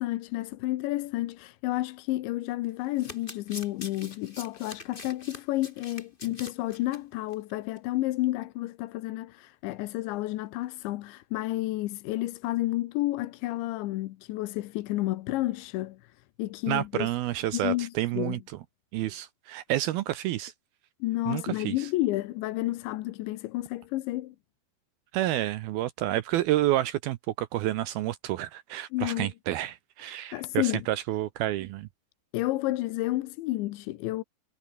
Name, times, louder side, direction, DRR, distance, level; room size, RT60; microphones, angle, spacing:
voice 1, 0.0-17.1 17.5-18.4 21.0-24.4 28.9-29.3 30.0-30.9 32.3-34.2, left 17 dB, 85° left, 3.3 m, -31 dB
Domestic sounds home sounds, 2.8-7.0 7.3-7.5 7.8-7.9, left 3 dB, 20° left, 1.4 m, -44 dB
voice 2, 16.7-18.4 18.9-20.5 21.3-21.9 25.1-31.9, right 14 dB, 75° right, 2.3 m, -29 dB
omnidirectional pair, 5.2 m